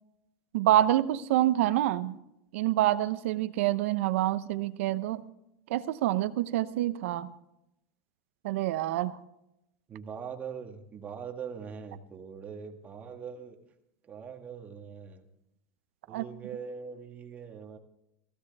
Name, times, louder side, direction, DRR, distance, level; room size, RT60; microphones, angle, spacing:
voice 1, 0.5-2.1 2.5-5.2 5.7-7.3 8.4-9.2 16.1-16.2, right 14 dB, 85° right, 13 dB, 0.8 m, -27 dB
voice 2, 9.9-13.6 14.0-15.2 16.1-17.8, right 6 dB, 25° right, 4 dB, 1.6 m, -42 dB
18.5 x 15.5 x 3.5 m, 0.84 s
supercardioid pair, 155°, 7 cm